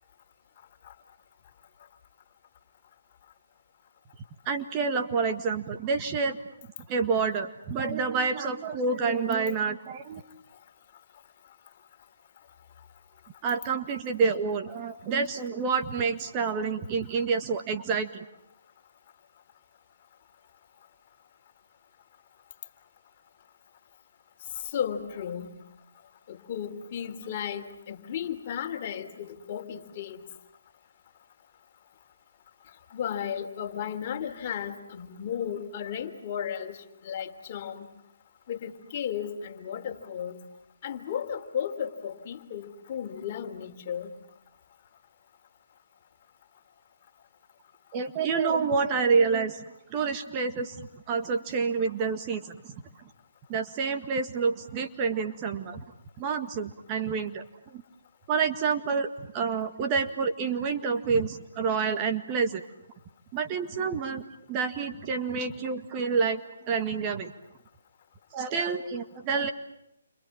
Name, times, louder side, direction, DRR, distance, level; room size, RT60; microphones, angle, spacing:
voice 1, 4.5-6.4 6.9-10.2 13.4-18.2 47.9-49.6 49.9-52.7 53.5-55.8 56.2-57.4 57.7-57.8 58.3-62.6 63.3-66.4 66.7-67.3 68.3-69.5, right 5 dB, 25° right, 6 dB, 1.8 m, -28 dB
voice 2, 24.6-25.5 26.3-30.2 32.9-37.9 38.5-40.4 40.8-44.1, left 8 dB, 35° left, 5 dB, 3.2 m, -34 dB
29.5 x 26.0 x 7.3 m, 0.82 s
hypercardioid pair, 150°, 0 cm